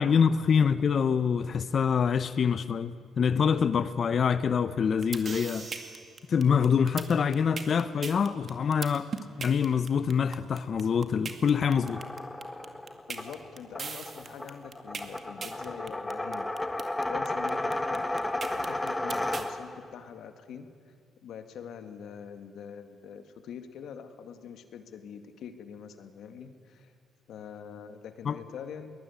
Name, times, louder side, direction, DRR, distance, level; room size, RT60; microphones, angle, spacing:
voice 1, 0.0-5.7 6.3-9.1 9.4-12.0 28.3-28.4, left 6 dB, 50° left, 0.8 m, -25 dB
sound 1, 4.8-19.5, right 5 dB, 45° right, 2.1 m, -39 dB
sound 2, 11.7-19.9, left 1 dB, 15° left, 1.2 m, -33 dB
voice 2, 13.1-21.0 21.2-26.9 27.3-28.9, left 7 dB, 75° left, 2.0 m, -44 dB
22.5 x 20.5 x 9.6 m
cardioid pair, 90°, 0 cm